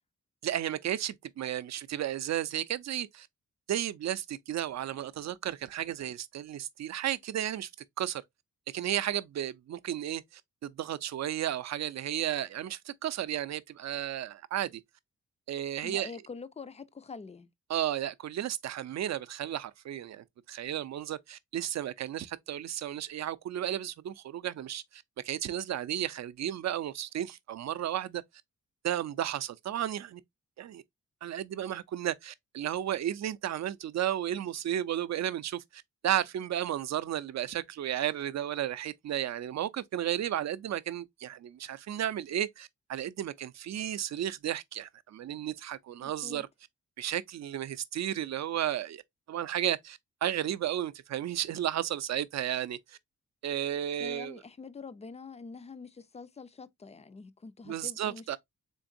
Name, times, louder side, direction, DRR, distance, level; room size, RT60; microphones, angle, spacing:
voice 1, 0.4-3.3 3.7-7.7 8.0-8.2 8.7-14.8 15.5-16.1 17.7-28.2 28.8-30.2 30.6-30.8 31.2-46.5 47.0-49.0 49.3-53.0 53.4-54.4 57.7-58.4, right 11 dB, 60° right, 0.4 m, -33 dB
voice 2, 15.8-17.5 46.0-46.4 54.0-58.4, left 4 dB, 20° left, 0.3 m, -45 dB
3.8 x 3.5 x 2.5 m
cardioid pair, 100°, 31 cm